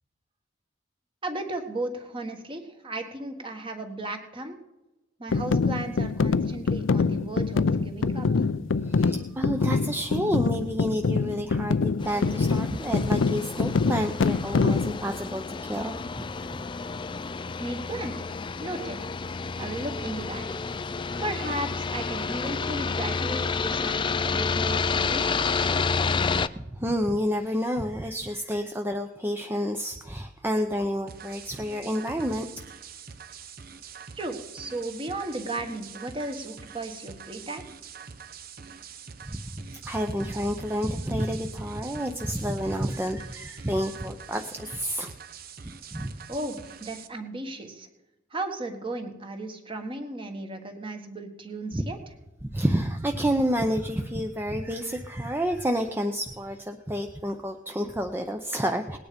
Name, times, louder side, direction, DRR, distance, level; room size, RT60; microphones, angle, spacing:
voice 1, 1.2-4.5 5.2-8.5 17.6-19.0 19.6-20.4 21.2-25.7 34.1-37.7 46.3-47.9 48.3-52.0, right 2 dB, 25° right, 5 dB, 1.5 m, -35 dB
sound 1, 5.3-15.0, left 4 dB, 85° left, 0.5 m, -25 dB
voice 2, 8.8-16.0 16.5-16.6 26.7-32.5 39.2-45.1 45.9-46.1 51.7-51.8 52.5-59.0, equal, 10° right, 4 dB, 0.7 m, -29 dB
sound 2, 12.0-26.5, left 4 dB, 25° left, 0.4 m, -30 dB
sound 3, 31.1-47.1, right 7 dB, 50° right, 0.8 m, -45 dB
19.0 x 9.6 x 5.2 m, 1.0 s
head